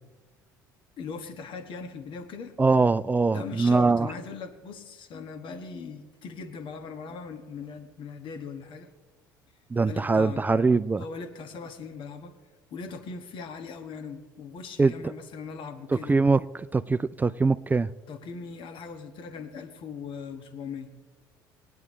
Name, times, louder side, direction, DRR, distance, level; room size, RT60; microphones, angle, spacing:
voice 1, 1.0-2.5 3.3-8.9 9.9-10.4 11.0-12.4 12.7-16.2 18.1-20.9, left 5 dB, 50° left, 1.5 m, -40 dB
voice 2, 2.6-4.1 9.7-11.0 14.8-15.1 16.1-17.9, right 4 dB, 15° right, 0.4 m, -23 dB
20.5 x 9.6 x 3.2 m
figure-of-eight pair, 60°, 11 cm